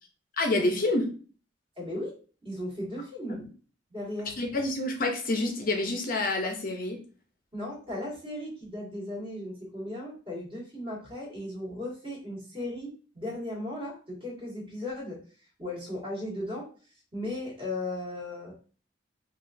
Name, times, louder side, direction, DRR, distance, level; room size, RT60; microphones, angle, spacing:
voice 1, 0.4-1.1 3.3-3.4 4.4-7.0, left 2 dB, 50° left, 3 dB, 0.6 m, -28 dB
voice 2, 1.8-2.1 2.4-3.4 3.9-4.3 7.5-15.2 15.6-16.7 17.1-18.5, left 1 dB, 30° right, -5 dB, 1.7 m, -36 dB
5.0 x 2.4 x 2.6 m, 0.38 s
head